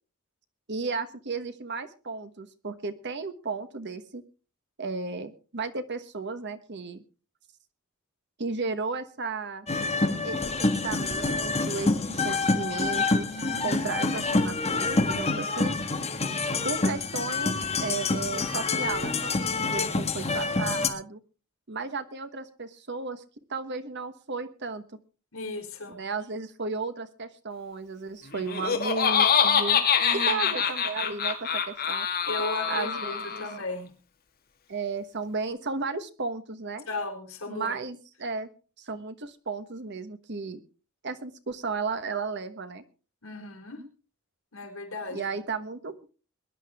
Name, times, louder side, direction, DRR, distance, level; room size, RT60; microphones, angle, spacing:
voice 1, 0.7-4.2 4.8-7.0 8.4-9.7 10.2-15.7 16.6-21.2 21.7-23.2 23.5-24.8 26.0-29.9 30.3-32.1 32.7-33.5 34.7-36.9 37.5-38.5 38.8-40.6 41.0-42.8 45.1-46.1, right 4 dB, 55° right, 11 dB, 1.2 m, -34 dB
sound 1, 9.7-20.9, left 3 dB, 30° left, 1.6 m, -27 dB
voice 2, 13.3-13.8 19.8-19.9 25.3-26.0 30.0-30.4 32.3-33.9 36.9-37.8 43.2-43.8 44.5-45.3, left 2 dB, 75° left, 2 dB, 4.2 m, -35 dB
Laughter, 28.3-33.6, left 7 dB, 45° left, 2.0 m, -25 dB
22.5 x 11.0 x 3.5 m, 0.37 s
head